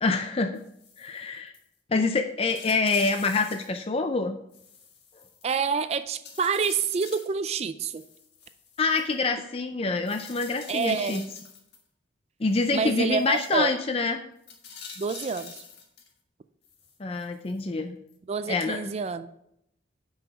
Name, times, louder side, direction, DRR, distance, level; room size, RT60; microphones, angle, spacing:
voice 1, 0.0-0.6 1.0-1.5 1.9-4.4 8.8-11.2 12.4-14.2 17.0-18.0 18.5-18.8, left 3 dB, 30° left, 6 dB, 0.4 m, -26 dB
sound 1, 0.5-1.2 1.5-1.7 2.0-2.1 2.5-3.8 4.5-5.8 6.2-7.4 7.9-9.1 10.1-11.8 12.5-13.6 14.4-16.1 16.6-17.6 18.1-18.2, left 5 dB, 60° left, 1.7 m, -46 dB
voice 2, 5.4-8.0 10.7-11.3 12.7-13.7 15.0-15.6 18.3-19.3, right 5 dB, 35° right, 11 dB, 0.3 m, -28 dB
10.0 x 5.6 x 5.7 m, 0.78 s
head